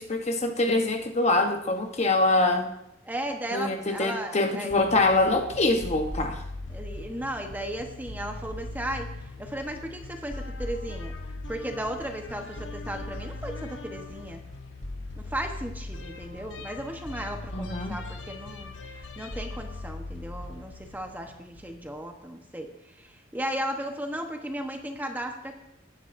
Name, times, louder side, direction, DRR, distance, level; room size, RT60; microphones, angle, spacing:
voice 1, 0.0-2.7 3.5-6.4 17.5-18.0, left 2 dB, 35° left, 5 dB, 0.9 m, -24 dB
voice 2, 3.0-4.8 6.7-9.1 9.4-11.1 11.5-14.4 15.2-22.7 23.0-25.6, right 1 dB, 10° right, 3 dB, 1.0 m, -35 dB
sound 1, 4.7-22.0, left 2 dB, 80° left, 1.1 m, -39 dB
17.0 x 11.0 x 2.6 m, 0.82 s
head